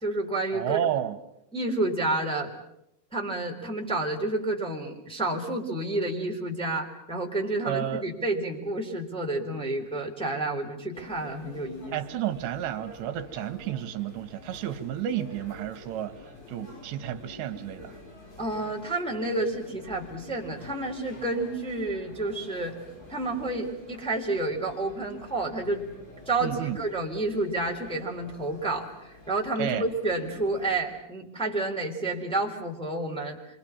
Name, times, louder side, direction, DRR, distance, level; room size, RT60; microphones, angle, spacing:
voice 1, 0.0-0.8 1.5-2.5 3.1-12.0 18.4-22.7 23.1-25.8 26.2-33.4, right 2 dB, ahead, -2 dB, 3.2 m, -30 dB
voice 2, 0.5-1.2 7.7-8.1 11.9-16.2 16.5-18.0 26.4-26.8 29.6-29.9, right 11 dB, 80° right, 9 dB, 3.5 m, -31 dB
sound 1, 10.9-30.8, left 3 dB, 60° left, 8.6 m, -48 dB
27.0 x 24.0 x 7.3 m, 0.83 s
omnidirectional pair, 4.9 m